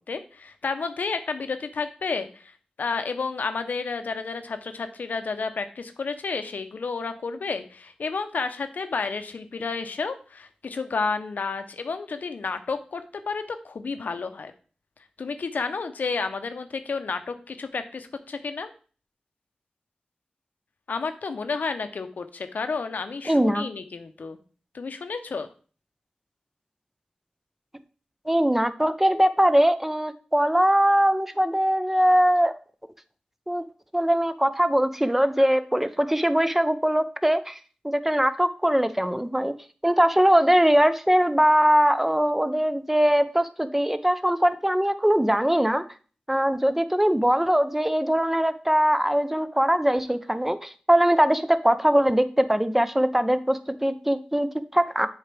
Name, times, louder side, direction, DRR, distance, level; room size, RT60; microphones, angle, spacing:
voice 1, 0.0-2.5 2.8-14.5 15.2-18.7 20.9-24.4 24.7-25.5, left 4 dB, 80° left, 9 dB, 0.7 m, -31 dB
voice 2, 23.3-23.7 28.3-32.5 33.5-33.6 33.9-37.6 37.8-39.5 39.8-45.8 46.3-55.1, equal, 10° right, 11 dB, 0.7 m, -21 dB
7.7 x 4.9 x 3.4 m, 0.40 s
cardioid pair, 45°, 3 cm